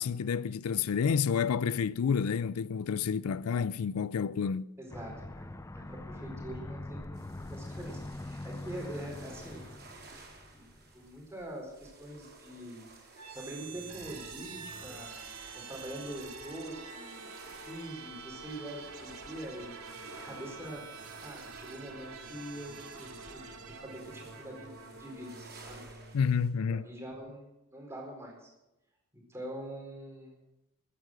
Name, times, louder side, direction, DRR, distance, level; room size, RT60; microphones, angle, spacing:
voice 1, 0.0-4.7 26.1-26.9, left 6 dB, 80° left, 0.4 m, -29 dB
voice 2, 4.8-9.6 10.5-10.7 10.9-12.9 13.3-15.1 15.5-17.3 17.6-19.8 20.1-20.9 21.2-24.7 25.0-25.8 26.7-28.5 29.3-30.3, right 1 dB, 10° right, 4.4 m, -44 dB
Aircraft, 4.9-11.0, left 2 dB, 15° left, 0.4 m, -43 dB
sound 1, 7.1-26.5, right 3 dB, 45° right, 4.3 m, -55 dB
sound 2, 13.2-27.0, right 4 dB, 80° right, 2.3 m, -47 dB
14.5 x 9.6 x 7.6 m
head